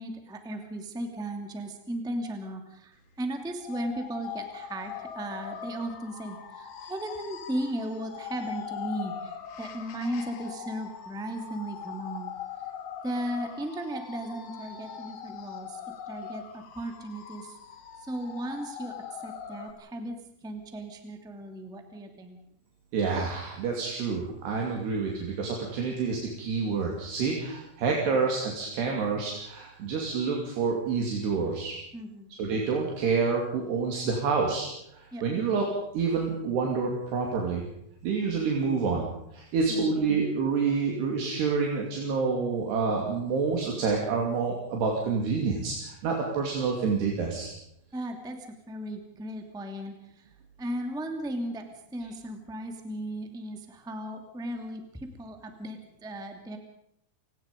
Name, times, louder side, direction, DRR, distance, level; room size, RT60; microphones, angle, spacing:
voice 1, 0.0-12.3 13.0-15.8 16.1-17.6 18.0-18.9 19.2-20.2 20.4-22.4 31.9-32.3 35.1-35.2 39.7-40.0 47.9-50.3 50.6-51.7 51.9-56.6, right 1 dB, ahead, 5 dB, 1.3 m, -36 dB
sound 1, 3.6-19.7, left 8 dB, 60° left, 1.7 m, -41 dB
voice 2, 22.9-31.8 32.3-34.7 34.9-37.6 38.0-39.0 39.3-47.5, right 5 dB, 70° right, 0 dB, 4.7 m, -28 dB
30.0 x 18.5 x 5.3 m, 0.76 s
omnidirectional pair, 5.0 m